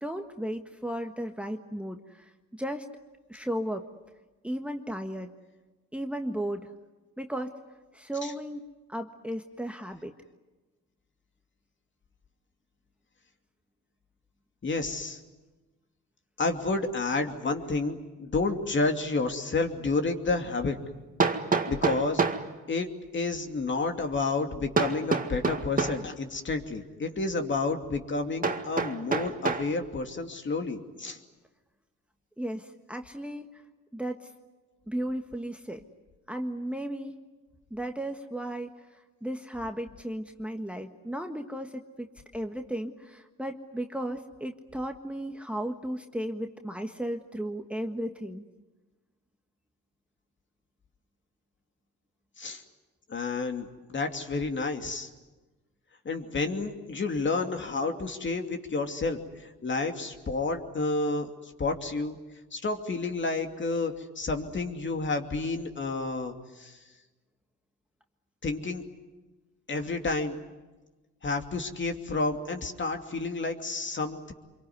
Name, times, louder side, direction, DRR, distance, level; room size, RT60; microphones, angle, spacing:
voice 1, 0.0-2.3 2.6-2.8 3.3-3.8 4.4-5.3 5.9-6.7 7.2-7.5 7.9-10.1 32.4-33.6 33.9-34.3 34.9-35.8 36.3-37.2 37.7-42.1 42.3-48.4, right 1 dB, 5° right, 5 dB, 1.5 m, -35 dB
voice 2, 14.6-15.2 16.4-20.8 21.7-22.2 22.7-31.2 52.4-52.6 53.1-55.1 56.0-62.2 62.5-66.8 68.4-68.8 69.7-70.4 71.2-74.3, left 3 dB, 40° left, 5 dB, 2.7 m, -30 dB
Hammer, 19.6-19.7 21.2-22.5 24.8-26.1 28.4-29.7, right 4 dB, 30° right, 2.0 m, -27 dB
26.0 x 23.5 x 9.6 m, 1.2 s
cardioid pair, 90°, 30 cm